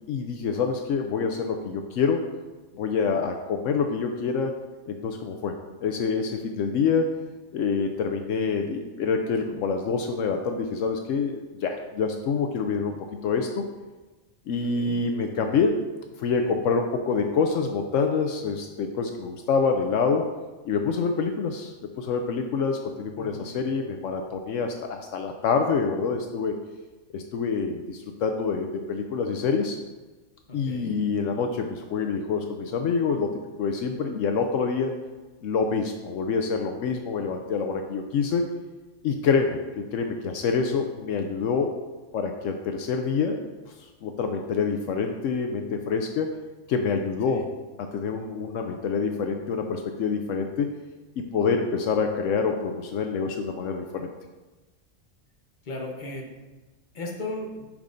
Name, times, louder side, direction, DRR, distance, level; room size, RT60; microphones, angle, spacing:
voice 1, 0.1-2.2 2.7-4.5 4.9-7.1 7.5-13.7 14.5-15.8 16.2-20.2 20.6-26.6 27.1-29.8 30.5-34.9 35.4-38.5 39.0-41.7 42.1-43.4 43.8-46.3 46.7-47.5 47.8-50.7 51.2-54.1, left 5 dB, 75° left, 4 dB, 0.9 m, -26 dB
voice 2, 23.2-23.6 30.5-30.9 47.3-47.4 55.6-56.3 56.9-57.7, left 2 dB, 40° left, 0 dB, 1.1 m, -36 dB
8.7 x 6.1 x 2.6 m, 1.2 s
omnidirectional pair, 1.3 m